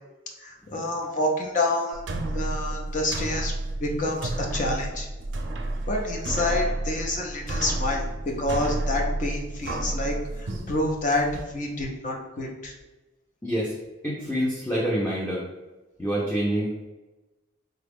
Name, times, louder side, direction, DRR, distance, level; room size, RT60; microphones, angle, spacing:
voice 1, 0.4-2.0 2.3-3.5 3.8-5.1 5.9-8.1 8.4-12.7, left 1 dB, 45° left, 1 dB, 0.6 m, -28 dB
sound 1, 1.9-11.4, right 2 dB, 75° right, 0.5 m, -31 dB
voice 2, 13.4-13.7 14.0-15.4 16.0-16.9, equal, 10° left, -6 dB, 0.5 m, -27 dB
3.8 x 2.3 x 3.5 m, 1.1 s
head